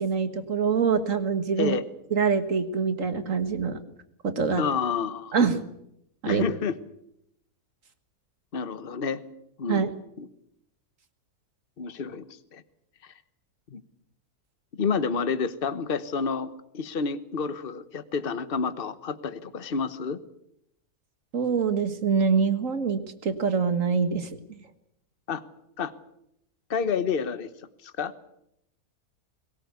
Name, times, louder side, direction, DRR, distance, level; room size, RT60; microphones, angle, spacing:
voice 1, 0.0-1.8 2.1-3.8 4.2-4.6 5.3-5.6 6.2-6.4 9.7-9.9 21.3-24.6, right 5 dB, 55° right, 10 dB, 2.0 m, -25 dB
voice 2, 4.6-5.3 6.2-6.7 8.5-9.2 9.6-9.8 10.2-10.3 11.8-12.6 13.0-13.1 13.7-13.8 14.7-16.5 16.7-20.2 25.3-25.4 25.8-25.9 26.7-27.5 27.8-28.1, left 5 dB, 40° left, 13 dB, 1.3 m, -29 dB
22.0 x 18.5 x 8.2 m, 0.78 s
omnidirectional pair, 1.6 m